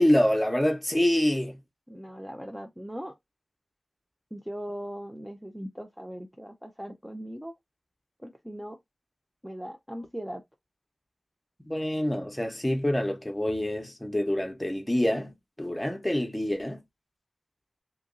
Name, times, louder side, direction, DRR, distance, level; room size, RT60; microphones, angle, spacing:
voice 1, 0.0-1.6 11.6-15.3 15.6-16.8, left 1 dB, 10° left, 0.9 m, -26 dB
voice 2, 1.9-3.1 4.3-7.5 8.2-8.8 9.4-10.4, equal, 5° right, 0.5 m, -39 dB
2.9 x 2.5 x 3.8 m
wide cardioid pair, 70°, 0 cm